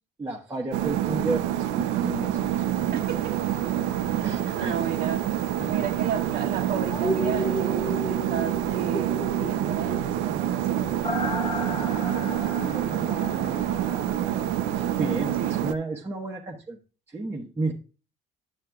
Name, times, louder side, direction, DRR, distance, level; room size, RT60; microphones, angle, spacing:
voice 1, 0.2-2.9 4.2-4.8 5.6-5.9 12.0-14.5 14.7-16.8 17.1-17.7, right 2 dB, 15° right, -2 dB, 1.0 m, -33 dB
sound 1, 0.7-15.7, right 11 dB, 90° right, 0.5 m, -27 dB
voice 2, 2.9-3.3 4.0-5.2 5.6-12.4 15.4-15.6, right 7 dB, 65° right, 0 dB, 1.0 m, -34 dB
sound 2, 6.9-14.8 15.1-15.2, equal, 25° left, 1.0 m, -34 dB
10.5 x 7.4 x 2.3 m, 0.35 s
cardioid pair, 110°, 17 cm